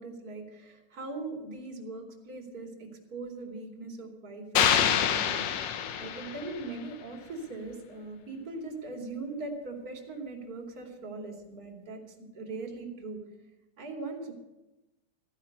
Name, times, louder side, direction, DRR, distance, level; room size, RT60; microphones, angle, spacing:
voice 1, 0.0-5.4 6.0-12.0 12.3-13.2 13.8-14.3, right 3 dB, 30° right, 1 dB, 2.7 m, -40 dB
sound 1, 4.6-6.7, left 9 dB, 70° left, 1.9 m, -26 dB
15.0 x 10.0 x 6.6 m, 1.0 s
omnidirectional pair, 3.4 m